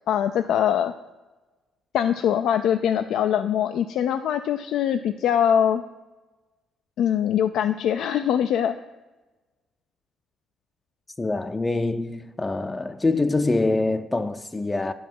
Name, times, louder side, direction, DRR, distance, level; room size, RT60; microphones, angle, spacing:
voice 1, 0.1-0.9 1.9-5.8 7.0-8.8, left 9 dB, 80° left, 0.4 m, -22 dB
voice 2, 11.2-14.9, left 2 dB, 20° left, 0.5 m, -25 dB
9.7 x 5.4 x 7.7 m
cardioid pair, 90°, 0 cm